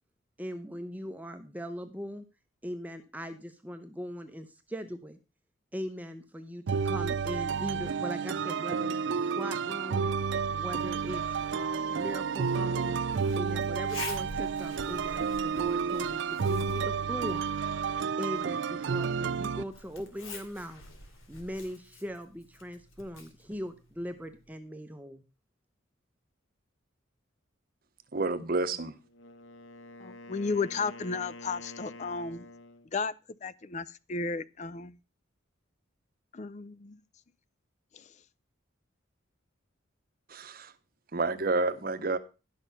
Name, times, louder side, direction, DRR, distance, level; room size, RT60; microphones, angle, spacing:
voice 1, 0.4-2.2 2.6-5.2 5.7-10.1 10.5-13.0 13.3-17.5 18.2-20.8 21.3-25.2, equal, 10° right, 0.7 m, -40 dB
sound 1, 6.7-19.6, right 6 dB, 60° right, 0.4 m, -31 dB
Zipper (clothing), 11.0-24.6, left 3 dB, 85° left, 2.6 m, -48 dB
voice 2, 28.1-29.0 40.3-40.7 41.1-42.2, right 3 dB, 45° right, 0.8 m, -29 dB
Wind instrument woodwind instrument, 29.0-32.9, left 2 dB, 65° left, 1.1 m, -48 dB
voice 3, 30.0-32.5 32.9-33.1 33.4-35.0 36.3-37.0 37.9-38.0, left 4 dB, 35° left, 0.4 m, -34 dB
11.5 x 6.4 x 5.5 m
head